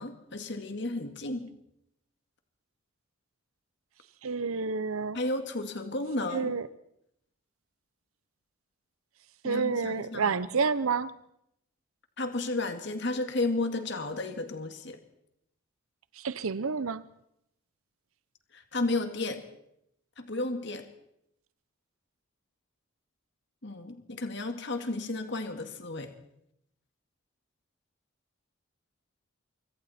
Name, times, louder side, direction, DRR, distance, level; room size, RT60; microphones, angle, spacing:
voice 1, 0.0-1.5 5.1-6.6 9.4-10.3 12.2-15.0 18.5-19.4 20.2-20.9 23.6-26.1, left 2 dB, 55° left, 2.0 m, -33 dB
voice 2, 4.2-5.2 6.3-6.7 9.4-11.1 16.2-17.0, right 5 dB, 85° right, 0.7 m, -29 dB
25.0 x 24.5 x 4.3 m
head